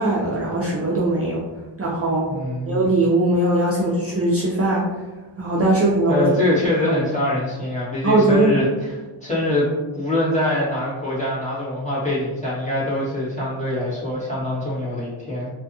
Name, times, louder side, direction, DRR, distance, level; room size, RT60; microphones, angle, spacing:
voice 1, 0.0-1.4 1.8-2.3 2.7-4.8 5.4-6.3 6.9-7.0 8.0-8.5, right 2 dB, 30° right, -6 dB, 0.4 m, -20 dB
voice 2, 2.3-2.8 6.1-8.9 9.2-9.7 9.9-15.5, left 1 dB, 15° left, -10 dB, 1.3 m, -23 dB
2.6 x 2.4 x 2.6 m, 1.2 s
wide cardioid pair, 70°, 50 cm